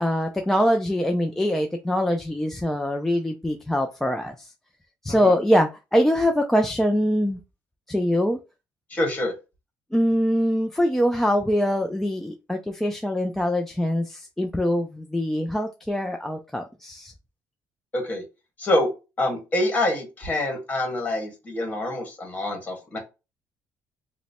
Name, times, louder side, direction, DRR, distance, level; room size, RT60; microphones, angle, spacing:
voice 1, 0.0-4.5 5.0-7.4 7.9-8.4 9.9-17.1, equal, 5° left, 3 dB, 0.4 m, -23 dB
voice 2, 8.9-9.3 17.9-18.2 18.6-18.9 19.2-23.0, left 1 dB, 25° left, 2 dB, 1.4 m, -26 dB
3.0 x 2.1 x 4.1 m, 0.28 s
cardioid pair, 125°, 6 cm